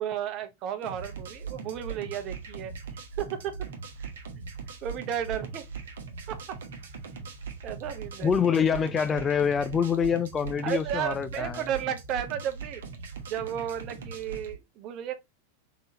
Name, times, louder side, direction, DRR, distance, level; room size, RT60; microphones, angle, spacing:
voice 1, 0.0-2.7 3.2-3.6 4.0-4.1 4.8-5.7 6.3-6.6 7.6-8.3 10.6-12.8 13.3-15.1, right 9 dB, 35° right, 0.9 m, -33 dB
sound 1, 0.8-14.5, right 5 dB, 60° right, 1.0 m, -40 dB
voice 2, 8.2-11.7, left 7 dB, 20° left, 0.3 m, -26 dB
3.8 x 3.8 x 2.8 m
figure-of-eight pair, 90°, 0 cm